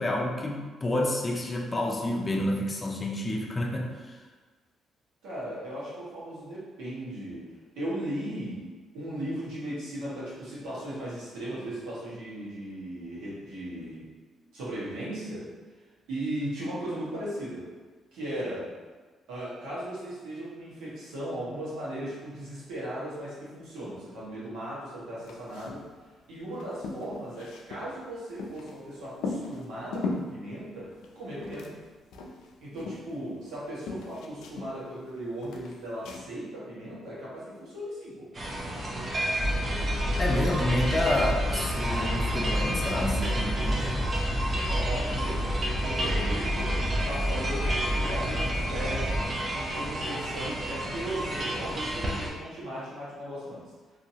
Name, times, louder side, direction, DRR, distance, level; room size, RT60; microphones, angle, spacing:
voice 1, 0.0-4.2 40.2-44.0, left 1 dB, 25° left, 0 dB, 0.5 m, -29 dB
voice 2, 5.2-7.4 7.7-8.6 8.9-14.0 14.5-15.5 16.1-17.7 18.1-18.7 19.3-25.8 26.3-30.9 31.1-31.7 32.6-38.2 44.7-46.8 47.0-49.1 49.5-53.6, right 1 dB, 85° right, -8 dB, 1.2 m, -37 dB
sound 1, 25.2-25.9 26.2-26.3 26.5-28.8 29.2-30.3 30.9-33.6 33.9-35.1 35.4-36.2, left 3 dB, 85° left, 0.3 m, -37 dB
sound 2, 38.3-52.3, right 1 dB, 35° right, 0.6 m, -32 dB
sound 3, 39.4-49.3, equal, 5° right, 1.3 m, -30 dB
2.8 x 2.7 x 2.7 m, 1.4 s
cardioid pair, 90°, 0 cm